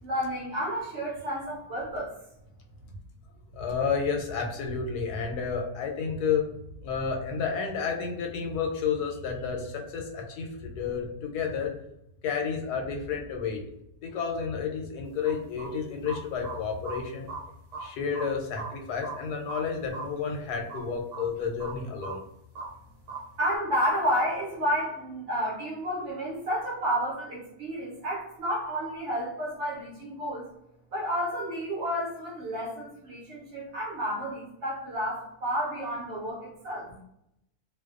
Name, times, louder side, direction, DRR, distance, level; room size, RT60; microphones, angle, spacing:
voice 1, 0.0-2.1 23.4-30.5 30.9-36.9, equal, 60° right, -5 dB, 0.8 m, -31 dB
voice 2, 3.5-6.5 6.8-11.7 12.2-13.6 14.0-17.3 17.8-22.2, left 6 dB, 90° left, 1 dB, 1.1 m, -31 dB
sound 1, 15.2-15.7 16.1-16.2 16.4-16.6 16.8-17.0 17.3-17.9 18.1-18.3 18.6-18.7 19.0-19.2 19.5-19.6 19.9-20.2 20.7-20.8 21.1-21.2 21.6-21.7 22.0-22.1 22.5-22.7 23.1-23.2, right 4 dB, 85° right, 1.2 m, -38 dB
2.6 x 2.0 x 2.3 m, 0.81 s
omnidirectional pair, 1.6 m